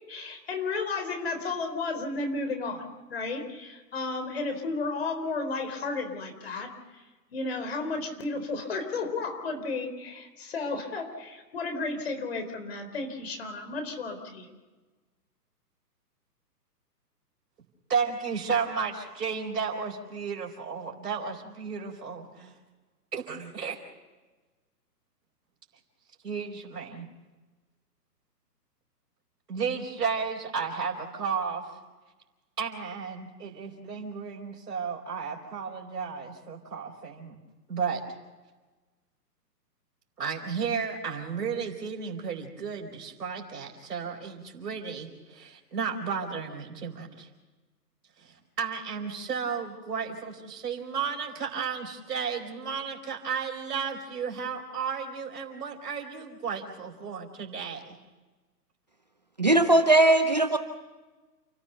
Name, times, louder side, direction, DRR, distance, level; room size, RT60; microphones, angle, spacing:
voice 1, 0.1-7.0 7.3-14.5, left 3 dB, 40° left, 6 dB, 4.1 m, -33 dB
voice 2, 17.9-22.5 23.1-23.8 26.2-27.1 29.5-31.7 32.6-37.4 37.7-38.0 40.2-47.3 48.2-58.0, right 6 dB, 70° right, -3 dB, 4.7 m, -33 dB
voice 3, 59.4-60.6, right 2 dB, 25° right, 8 dB, 0.7 m, -19 dB
29.5 x 16.0 x 6.9 m, 1.2 s
hypercardioid pair, 180°, 49 cm